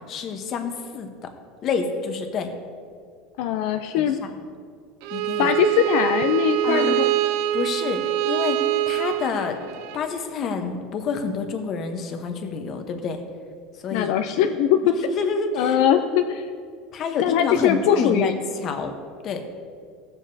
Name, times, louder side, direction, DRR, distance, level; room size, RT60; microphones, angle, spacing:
voice 1, 0.1-1.3 1.6-2.5 3.9-4.3 5.1-5.5 6.6-7.0 7.5-9.6 9.9-13.2 13.8-14.1 15.1-15.8 16.9-18.3 18.6-18.9 19.2-19.4, left 5 dB, 35° left, 5 dB, 0.9 m, -28 dB
voice 2, 3.4-4.2 5.4-7.1 13.9-14.9 15.5-16.5 17.2-18.4, left 9 dB, 65° left, 7 dB, 0.4 m, -21 dB
Bowed string instrument, 5.0-10.0, right 15 dB, 65° right, 0.4 m, -24 dB
16.0 x 7.2 x 2.7 m, 2.1 s
cardioid pair, 155°, 0 cm